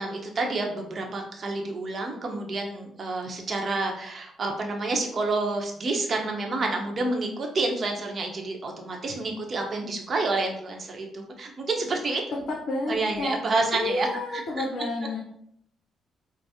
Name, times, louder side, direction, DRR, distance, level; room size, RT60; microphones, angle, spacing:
voice 1, 0.0-12.2 12.9-14.6, right 3 dB, 45° right, 2 dB, 0.7 m, -29 dB
voice 2, 12.5-13.3 13.7-15.2, left 2 dB, 65° left, -1 dB, 0.6 m, -30 dB
4.7 x 2.0 x 2.7 m, 0.71 s
cardioid pair, 90°, 0 cm